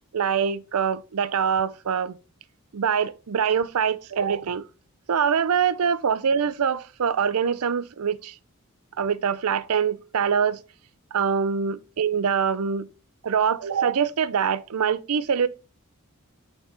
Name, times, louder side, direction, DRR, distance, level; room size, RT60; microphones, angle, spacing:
voice 1, 0.1-2.2 2.7-4.7 5.1-8.3 9.0-10.6 11.1-12.9 13.2-15.5, right 7 dB, 85° right, 0.5 m, -24 dB
8.7 x 4.0 x 3.4 m
head